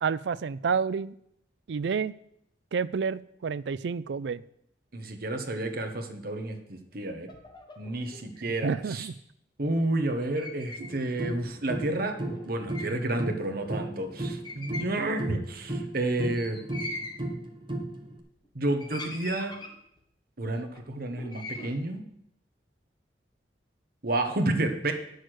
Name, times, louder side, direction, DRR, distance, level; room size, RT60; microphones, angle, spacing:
voice 1, 0.0-1.1 1.7-2.1 2.7-4.4 8.6-9.1, right 5 dB, 70° right, 17 dB, 0.4 m, -29 dB
voice 2, 4.9-7.3 7.8-9.1 9.6-16.6 18.5-19.5 20.4-22.0 24.0-24.9, right 2 dB, 55° right, 6 dB, 1.2 m, -30 dB
sound 1, 7.3-8.5 10.2-10.9 11.2-11.3 12.0-13.1 13.6-13.7 13.9-14.2 14.4-15.4 16.3-17.2 18.0-18.5 18.8-20.0 20.7-21.7, left 2 dB, 25° left, 1.2 m, -42 dB
sound 2, 10.8-18.2, right 1 dB, 25° right, 1.1 m, -36 dB
9.6 x 6.6 x 6.3 m, 0.74 s
head